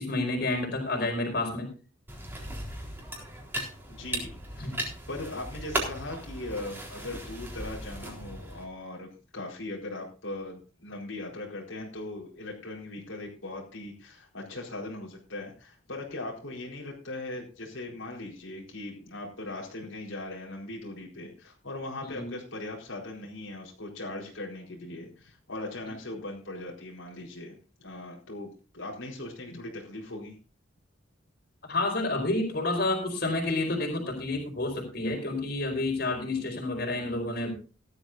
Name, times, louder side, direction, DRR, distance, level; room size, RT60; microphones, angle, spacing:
voice 1, 0.0-1.7 4.6-4.7 22.1-22.3 31.6-37.5, left 2 dB, 55° left, 3 dB, 4.7 m, -29 dB
sound 1, 2.1-8.6, right 1 dB, 10° right, 3.8 m, -37 dB
voice 2, 3.9-4.7 5.1-28.5 28.7-30.4, left 2 dB, 80° left, -2 dB, 4.4 m, -39 dB
17.0 x 12.5 x 2.6 m, 0.35 s
head